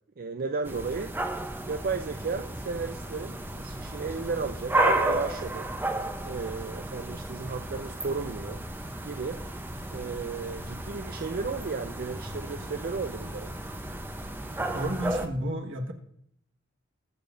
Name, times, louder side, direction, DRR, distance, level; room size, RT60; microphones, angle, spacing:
voice 1, 0.2-1.2 1.7-5.7 6.2-8.6 9.0-9.4 9.9-13.6 14.5-14.8, right 4 dB, 50° right, 7 dB, 0.5 m, -34 dB
sound 1, 0.6-15.3, right 1 dB, 10° right, 0.7 m, -33 dB
voice 2, 14.7-15.9, right 1 dB, 65° right, 3 dB, 1.5 m, -31 dB
20.5 x 7.0 x 2.6 m, 0.71 s
head